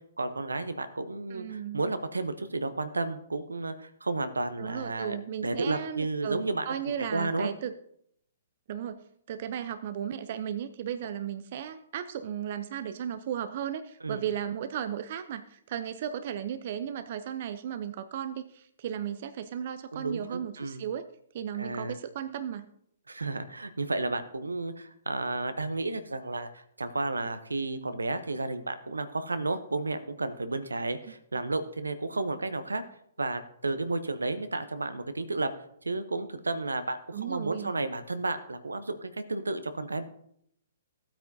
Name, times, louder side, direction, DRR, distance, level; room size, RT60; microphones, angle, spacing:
voice 1, 0.2-5.2 5.4-6.7 7.1-7.5 14.0-14.2 19.9-20.8 21.6-22.0 23.1-32.8 33.2-35.5 35.8-40.1, right 2 dB, 90° right, 11 dB, 0.7 m, -32 dB
voice 2, 1.3-1.9 4.6-7.8 8.7-9.0 9.3-21.0 21.3-22.7 31.1-31.5 37.1-37.7, right 9 dB, 50° right, 11 dB, 0.5 m, -35 dB
15.0 x 8.7 x 2.7 m, 0.70 s
figure-of-eight pair, 125°, 0 cm